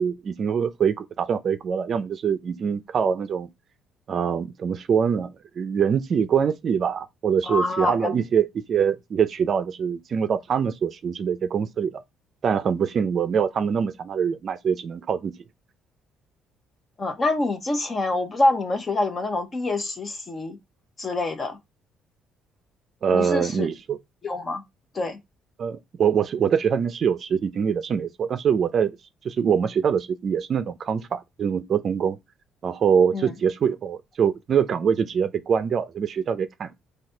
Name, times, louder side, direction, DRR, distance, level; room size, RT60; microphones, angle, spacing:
voice 1, 0.0-3.5 4.1-5.3 5.6-12.0 12.4-15.3 23.0-24.0 25.6-28.9 29.2-32.2 32.6-36.7, right 7 dB, 45° right, 0.5 m, -24 dB
voice 2, 7.4-8.2 17.0-20.6 21.0-21.6 23.1-23.7 24.2-24.6 24.9-25.2 33.1-33.3, left 2 dB, 30° left, 1.0 m, -26 dB
4.1 x 2.8 x 4.4 m
cardioid pair, 125°, 0 cm